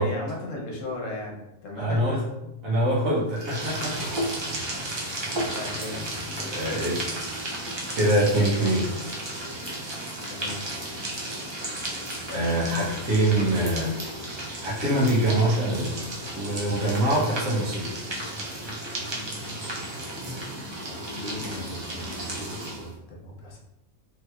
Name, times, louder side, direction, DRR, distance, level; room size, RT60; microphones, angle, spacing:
voice 1, 0.0-2.5 5.1-6.0 8.5-9.0 10.3-10.6 20.9-23.6, left 2 dB, 70° left, -2 dB, 1.1 m, -37 dB
voice 2, 1.8-2.2 2.6-4.0 5.2-5.4 6.5-7.1 7.9-8.9 11.3-11.4 12.3-14.0 14.6-15.9 16.3-17.9, right 1 dB, 80° right, -5 dB, 1.3 m, -24 dB
sound 1, 3.3-22.9, right 1 dB, 45° right, 0.3 m, -33 dB
3.3 x 2.8 x 2.3 m, 0.88 s
omnidirectional pair, 1.4 m